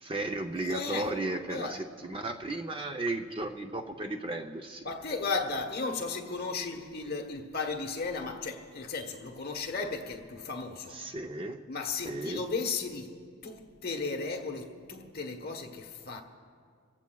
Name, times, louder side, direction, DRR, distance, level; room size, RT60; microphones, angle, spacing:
voice 1, 0.0-4.8 10.9-11.6 12.0-12.4, right 2 dB, 25° right, 0.5 m, -34 dB
voice 2, 0.6-1.1 1.5-1.8 4.8-11.0 11.7-16.2, left 4 dB, 45° left, 1.1 m, -35 dB
28.5 x 15.5 x 2.3 m
head